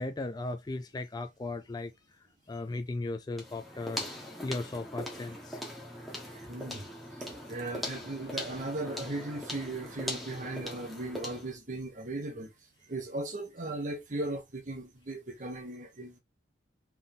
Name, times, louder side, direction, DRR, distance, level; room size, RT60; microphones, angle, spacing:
voice 1, 0.0-5.6 8.2-8.4, left 2 dB, 20° left, 0.3 m, -37 dB
sound 1, 3.3-11.6, left 1 dB, ahead, 1.3 m, -41 dB
voice 2, 6.3-6.9 7.2-12.5 12.9-16.2, right 2 dB, 45° right, 1.2 m, -37 dB
3.8 x 3.6 x 3.7 m
head